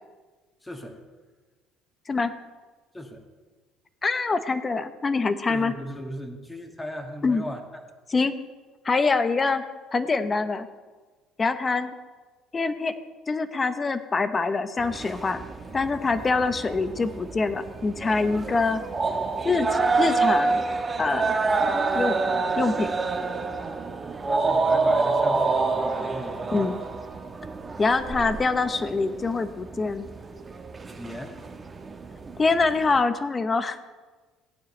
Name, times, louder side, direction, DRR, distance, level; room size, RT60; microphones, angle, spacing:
voice 1, 0.6-1.0 2.9-3.2 5.5-7.6 24.3-26.7 31.0-31.4, equal, 15° left, 3 dB, 2.0 m, -37 dB
voice 2, 4.0-5.7 7.2-7.4 8.1-8.3 8.8-10.7 11.4-12.0 12.5-12.9 13.3-15.4 15.7-18.8 19.4-20.6 21.0-21.5 21.9-22.2 22.6-23.0 26.5-26.8 27.8-30.1 32.4-33.9, left 4 dB, 30° left, 10 dB, 0.9 m, -25 dB
sound 1, 14.8-33.0, right 4 dB, 25° right, 1.3 m, -28 dB
16.5 x 9.0 x 3.3 m, 1.3 s
supercardioid pair, 80°, 0 cm